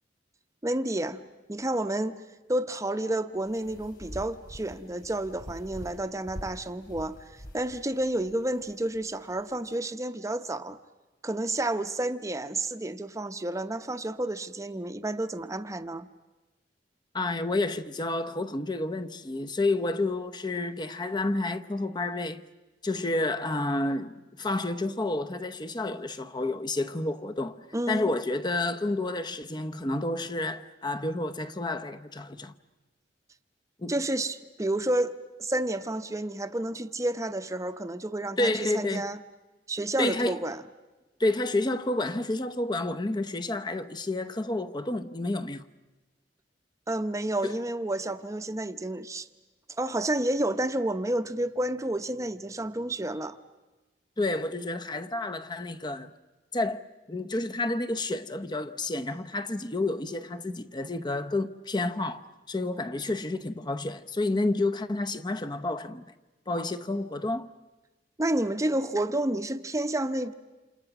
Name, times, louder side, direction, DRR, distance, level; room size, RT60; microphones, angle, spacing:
voice 1, 0.6-1.2 1.5-2.2 2.5-7.2 7.5-10.8 11.2-16.1 27.7-28.1 33.9-35.1 35.4-39.2 39.7-40.6 46.9-49.3 49.8-53.4 68.2-70.3, right 1 dB, 15° right, 0.8 m, -30 dB
sound 1, 3.3-9.7, equal, 55° left, 3.1 m, -46 dB
voice 2, 17.1-22.4 22.8-32.5 33.8-33.9 38.4-39.1 40.0-40.4 41.2-45.7 47.4-47.6 54.2-56.1 56.5-66.0 66.5-67.5, left 2 dB, 25° left, 0.8 m, -30 dB
29.0 x 27.5 x 6.0 m
head